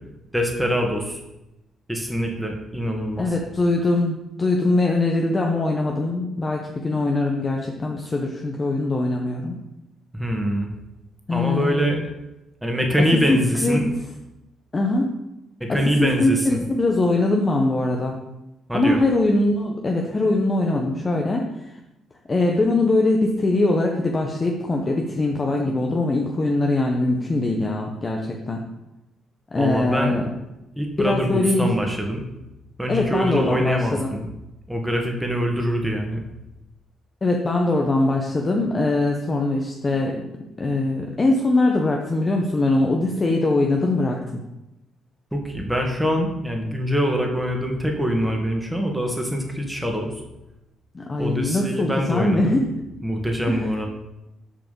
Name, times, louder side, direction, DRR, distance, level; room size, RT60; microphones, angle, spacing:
voice 1, 0.3-1.2 1.9-3.3 10.1-10.7 11.3-12.0 12.6-13.8 15.6-16.6 18.7-19.0 29.6-30.1 30.8-32.2 32.8-34.3 34.7-36.2 45.3-50.1 51.2-52.6 53.0-53.9, equal, 5° right, 2 dB, 1.9 m, -24 dB
voice 2, 3.2-9.5 11.3-11.9 13.1-13.9 14.7-15.1 15.7-18.2 18.7-21.4 22.3-28.6 29.5-30.3 31.0-31.7 32.9-34.1 37.2-40.2 40.6-44.4 50.9-52.7 53.5-53.6, left 2 dB, 30° left, 1 dB, 1.1 m, -22 dB
7.3 x 4.8 x 6.9 m, 0.93 s
cardioid pair, 90°, 0 cm